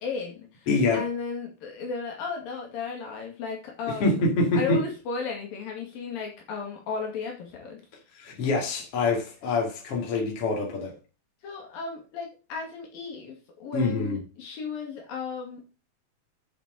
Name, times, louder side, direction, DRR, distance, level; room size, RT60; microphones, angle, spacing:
voice 1, 0.0-0.7 0.9-4.2 4.5-7.8 11.4-15.6, left 5 dB, 75° left, 4.0 m, -35 dB
voice 2, 0.7-1.1 4.0-4.8 8.2-10.9 13.7-14.2, left 3 dB, 45° left, 3.1 m, -25 dB
7.8 x 7.1 x 5.1 m
omnidirectional pair, 4.2 m